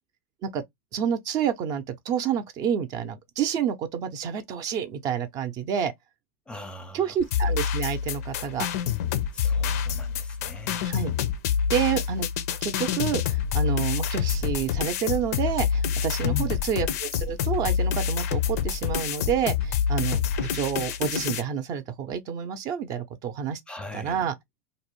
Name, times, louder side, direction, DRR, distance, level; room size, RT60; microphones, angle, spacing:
voice 1, 0.9-5.9 6.9-8.7 10.8-11.1 11.7-12.3 12.6-20.2 20.5-23.6 23.9-24.3, right 8 dB, 45° right, 0.5 m, -28 dB
voice 2, 6.5-7.2 9.3-10.8 16.2-16.5 23.7-24.3, left 3 dB, 10° left, 0.5 m, -39 dB
sound 1, 7.2-21.4, left 7 dB, 75° left, 0.5 m, -27 dB
2.5 x 2.0 x 2.9 m
supercardioid pair, 120°, 8 cm